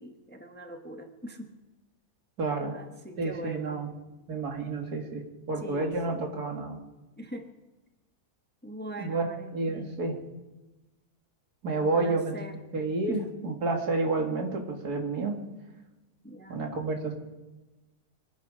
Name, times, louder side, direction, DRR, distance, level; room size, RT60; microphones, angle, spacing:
voice 1, 0.0-1.6 2.7-3.8 5.6-6.2 7.2-7.6 8.6-10.0 11.7-12.6 13.1-13.2 16.2-16.6, equal, 10° left, 5 dB, 1.0 m, -42 dB
voice 2, 2.4-2.8 3.2-3.9 4.3-6.8 9.0-10.2 11.6-12.4 12.7-15.4 16.5-17.1, right 3 dB, 80° right, 2 dB, 2.5 m, -30 dB
24.5 x 10.0 x 5.1 m, 1.1 s
omnidirectional pair, 1.6 m